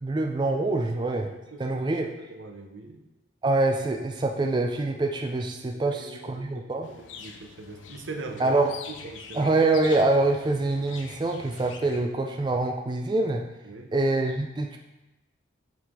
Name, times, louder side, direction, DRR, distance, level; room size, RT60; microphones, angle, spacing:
voice 1, 0.0-1.3 1.6-2.1 3.4-6.9 8.4-8.7 9.3-13.4 13.9-14.8, right 2 dB, 25° right, 3 dB, 0.3 m, -25 dB
voice 2, 1.5-1.9 2.3-3.0 5.7-8.6 9.0-9.5 13.6-13.9, right 2 dB, 85° right, 4 dB, 0.7 m, -41 dB
sound 1, 6.8-12.1, left 5 dB, 85° left, 0.6 m, -45 dB
5.7 x 4.8 x 3.6 m, 1.0 s
head